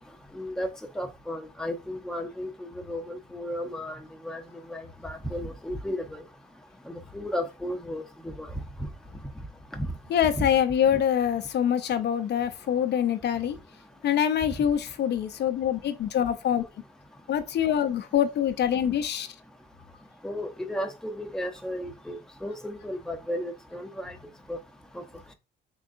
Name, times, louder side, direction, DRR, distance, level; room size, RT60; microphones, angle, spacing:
voice 1, 0.3-0.7 1.0-4.0 4.2-4.4 4.7-6.2 7.1-8.0 8.4-8.5 9.7-9.9 10.4-10.5 20.2-24.1 24.5-24.6, equal, 5° left, 0.6 m, -34 dB
voice 2, 10.1-13.6 14.0-16.7 17.3-19.3, left 9 dB, 60° left, 0.5 m, -25 dB
3.7 x 3.4 x 2.4 m
cardioid pair, 90°, 20 cm